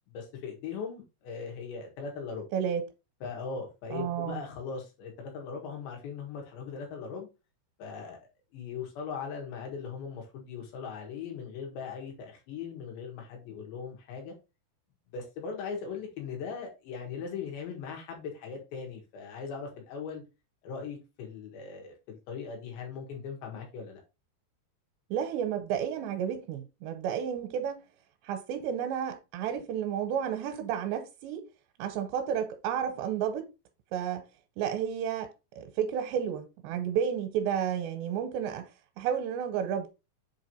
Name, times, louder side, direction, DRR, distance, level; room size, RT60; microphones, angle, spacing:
voice 1, 0.1-2.5 3.2-7.3 7.8-14.4 15.1-20.2 20.6-24.0, left 6 dB, 90° left, 3.9 m, -39 dB
voice 2, 2.5-2.8 3.9-4.4 25.1-27.8 28.2-31.4 31.8-33.5 33.9-34.2 34.6-35.3 35.6-38.7 39.0-39.9, right 8 dB, 85° right, 2.9 m, -31 dB
7.5 x 3.1 x 4.3 m
omnidirectional pair, 4.9 m